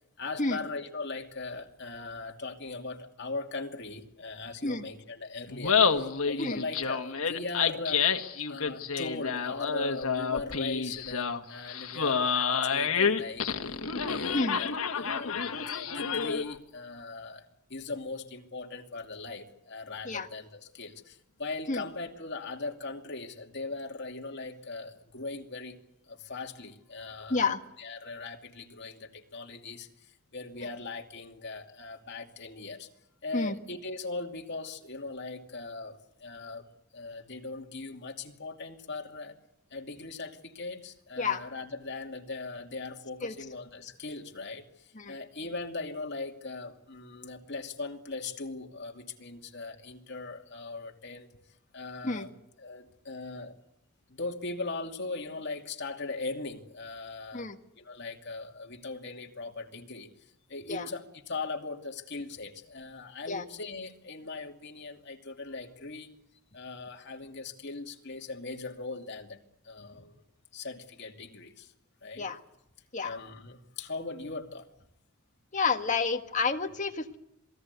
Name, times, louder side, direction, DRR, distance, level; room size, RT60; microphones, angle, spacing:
voice 1, 0.2-8.0 8.4-13.5 14.0-14.7 14.9-17.4 17.7-25.8 26.1-27.5 27.8-32.9 33.2-36.6 36.9-39.3 39.7-44.6 45.1-51.3 51.7-52.3 52.6-53.5 54.1-57.5 57.8-60.1 60.5-66.1 66.5-70.1 70.5-71.7 72.0-72.3 73.0-74.7, left 3 dB, 55° left, 2 dB, 2.7 m, -39 dB
Laughter, 5.5-16.5, left 6 dB, 80° left, 1.6 m, -29 dB
voice 2, 75.5-77.2, left 4 dB, 35° left, 5 dB, 1.6 m, -29 dB
27.0 x 20.0 x 8.2 m, 0.81 s
head